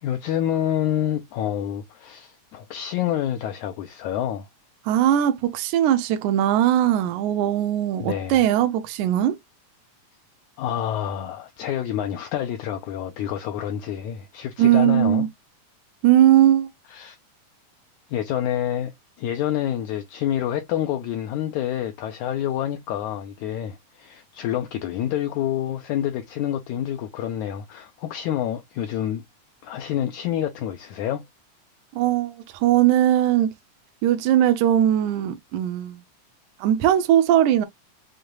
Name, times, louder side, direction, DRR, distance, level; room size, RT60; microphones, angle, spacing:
voice 1, 0.0-4.5 8.0-8.4 10.6-15.3 16.9-17.2 18.1-18.9 19.2-29.2 29.6-31.2, left 11 dB, 75° left, 1.8 m, -27 dB
voice 2, 4.9-9.4 14.6-15.3 16.0-16.7 31.9-33.5 34.0-36.0 36.6-37.7, right 11 dB, 75° right, 2.0 m, -19 dB
6.5 x 2.8 x 2.3 m
omnidirectional pair, 3.9 m